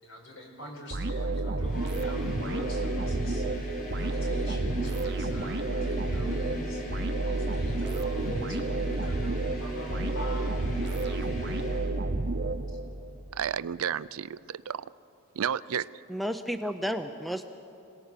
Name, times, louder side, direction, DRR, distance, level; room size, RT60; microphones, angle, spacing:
voice 1, 0.0-3.7 3.9-10.5 10.8-11.6, left 1 dB, 65° left, 1 dB, 4.4 m, -43 dB
sound 1, 0.9-13.1, right 2 dB, 50° right, 0.8 m, -30 dB
sound 2, 1.6-11.9, equal, 40° left, 5.0 m, -38 dB
voice 2, 13.3-14.9 15.3-15.9, right 8 dB, 80° right, 17 dB, 0.4 m, -32 dB
voice 3, 16.1-17.5, equal, ahead, 8 dB, 0.5 m, -32 dB
26.5 x 18.5 x 6.7 m, 2.7 s
head